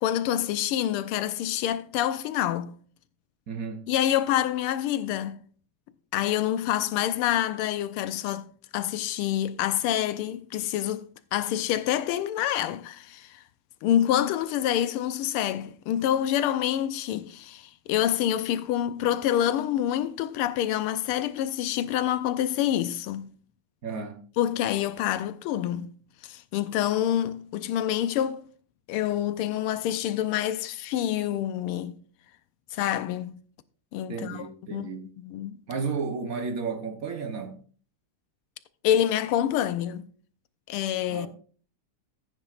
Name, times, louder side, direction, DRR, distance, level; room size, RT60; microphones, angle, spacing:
voice 1, 0.0-2.8 3.9-5.4 6.1-8.5 8.7-13.4 13.8-23.3 24.4-25.9 26.2-28.5 28.9-32.0 32.7-33.4 33.9-34.9 35.2-35.6 38.8-40.1 40.7-41.3, left 11 dB, 90° left, 1.6 m, -27 dB
voice 2, 3.5-3.9 23.8-24.2 34.1-35.1 35.7-37.6 41.1-41.3, right 5 dB, 50° right, 1.1 m, -33 dB
14.5 x 9.1 x 2.4 m
omnidirectional pair, 2.4 m